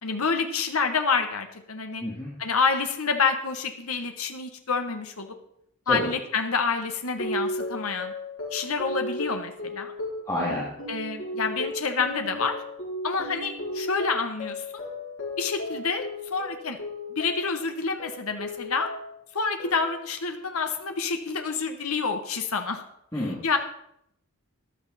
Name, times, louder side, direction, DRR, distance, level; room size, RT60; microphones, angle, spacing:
voice 1, 0.0-2.0 2.4-5.4 5.9-8.1 8.5-9.9 10.9-12.6 13.0-14.6 15.4-16.8 17.1-18.9 19.3-22.8 23.4-23.6, left 4 dB, 80° left, 6 dB, 1.2 m, -28 dB
sound 1, 7.2-17.6 18.0-19.2 19.6-20.1, left 1 dB, 60° left, 5.9 m, -35 dB
voice 2, 10.3-10.6 23.1-23.4, left 1 dB, 15° left, -7 dB, 2.8 m, -28 dB
14.0 x 11.0 x 4.2 m, 0.74 s
head